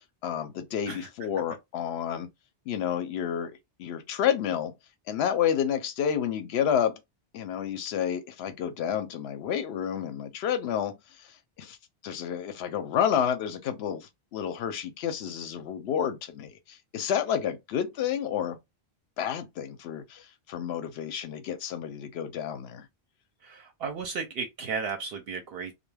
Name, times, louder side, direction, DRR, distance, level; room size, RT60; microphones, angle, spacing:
voice 1, 0.0-2.3 2.7-4.7 5.1-7.0 7.3-11.8 12.0-18.6 19.2-22.9, left 9 dB, 80° left, 0.8 m, -30 dB
voice 2, 23.4-25.7, right 5 dB, 70° right, 0.8 m, -34 dB
2.2 x 2.2 x 3.2 m
omnidirectional pair, 1.1 m